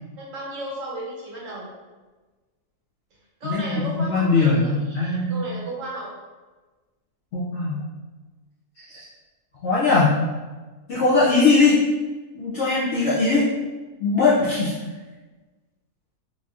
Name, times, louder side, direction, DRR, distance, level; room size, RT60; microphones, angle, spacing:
voice 1, 0.2-1.7 3.4-6.1, right 1 dB, 60° right, -4 dB, 1.0 m, -34 dB
voice 2, 3.4-5.4 7.3-7.8 8.9-9.0 9.6-10.1 10.9-11.8 12.3-13.5 14.0-14.7, left 3 dB, 70° left, -7 dB, 0.7 m, -20 dB
3.3 x 2.6 x 2.4 m, 1.3 s
omnidirectional pair, 1.6 m